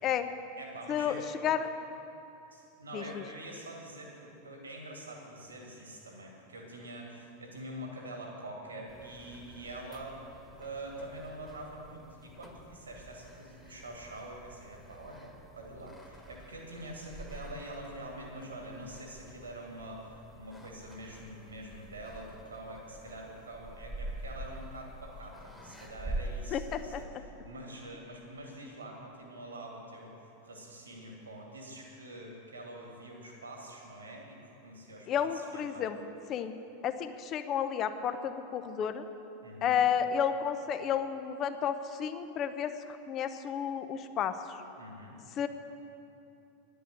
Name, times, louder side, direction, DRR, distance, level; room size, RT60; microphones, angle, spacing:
voice 1, 0.6-1.3 2.5-10.2 10.6-35.9 39.4-39.8 44.8-45.2, right 1 dB, 75° right, 0 dB, 2.3 m, -45 dB
voice 2, 2.9-3.2 26.5-27.0 35.1-36.0 36.3-36.5 36.8-39.1 39.6-44.4 45.4-45.5, left 8 dB, 35° left, 10 dB, 0.8 m, -31 dB
sound 1, 8.9-27.0, right 1 dB, 5° left, 1.6 m, -46 dB
10.0 x 10.0 x 7.9 m, 2.9 s
figure-of-eight pair, 85°, 0 cm